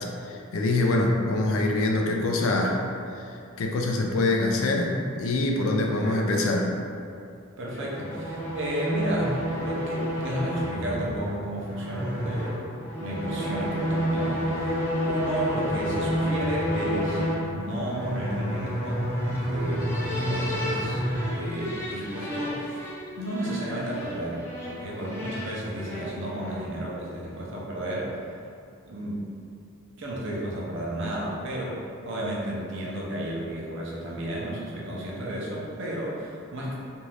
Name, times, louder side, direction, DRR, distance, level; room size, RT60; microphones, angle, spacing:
voice 1, 0.2-2.8 3.2-3.3 3.6-4.9 5.2-6.7, left 2 dB, 70° left, 1 dB, 0.4 m, -24 dB
voice 2, 5.8-6.3 7.6-12.6 13.0-19.0 19.4-19.9 20.2-21.0 21.3-22.8 23.2-28.2 28.8-29.2 30.0-36.8, right 1 dB, 60° right, -4 dB, 0.6 m, -32 dB
sound 1, 7.7-26.8, equal, 10° left, 0.5 m, -30 dB
2.6 x 2.4 x 3.2 m, 2.5 s
head